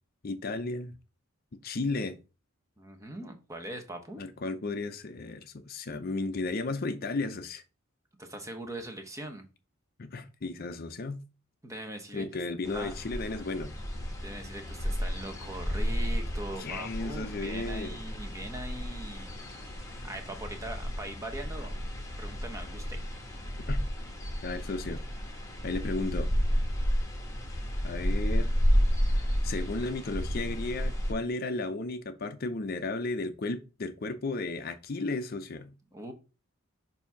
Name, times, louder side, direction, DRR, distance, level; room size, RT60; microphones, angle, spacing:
voice 1, 0.2-1.0 1.6-2.2 4.2-7.6 10.0-11.2 12.1-13.7 16.6-18.0 23.7-23.8 24.4-25.1 25.6-26.3 27.8-28.5 29.2-35.7, left 3 dB, 45° left, 0.5 m, -34 dB
voice 2, 2.8-4.2 8.2-9.4 11.6-12.3 12.7-12.9 14.2-19.3 20.0-21.8 22.2-23.0 35.9-36.1, right 1 dB, 15° right, 1.0 m, -41 dB
sound 1, 12.6-31.1, equal, 15° left, 1.2 m, -31 dB
6.9 x 2.7 x 5.7 m
head